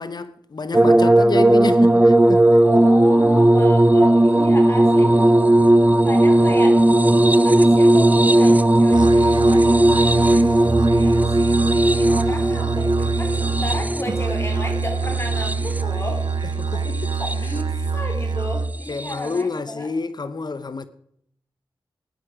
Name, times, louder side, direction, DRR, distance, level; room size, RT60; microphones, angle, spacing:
voice 1, 0.0-2.8 4.9-5.5 16.6-17.1 17.4-17.5 18.9-20.9, left 3 dB, 55° left, 0.8 m, -29 dB
sound 1, 0.7-16.0 16.9-17.6 19.0-19.1, right 1 dB, 20° right, 0.7 m, -16 dB
voice 2, 2.6-5.5 6.1-6.8 7.4-11.4 11.9-16.3 16.7-16.8 17.2-19.9, left 1 dB, 30° left, 3.7 m, -33 dB
Musical instrument, 8.9-18.9, right 5 dB, 60° right, 0.8 m, -26 dB
16.5 x 10.5 x 5.0 m
cardioid pair, 50°, 9 cm